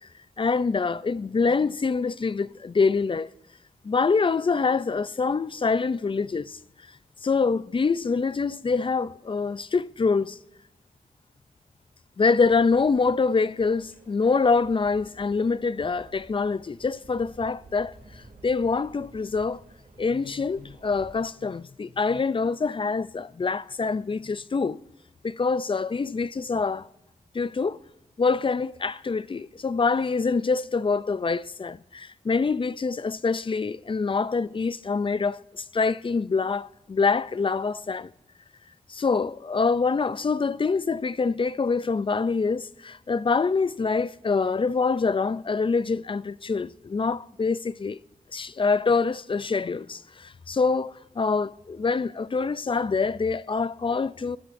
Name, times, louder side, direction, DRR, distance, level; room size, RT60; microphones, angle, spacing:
voice 1, 0.4-3.3 3.8-6.6 7.2-10.4 12.2-19.6 20.0-24.8 25.2-26.9 27.3-27.8 28.2-38.1 38.9-48.0 48.3-54.4, left 4 dB, 35° left, 0.4 m, -25 dB
sound 1, 12.3-21.1, right 2 dB, 80° right, 2.4 m, -52 dB
25.0 x 12.5 x 2.6 m
wide cardioid pair, 80°, 15 cm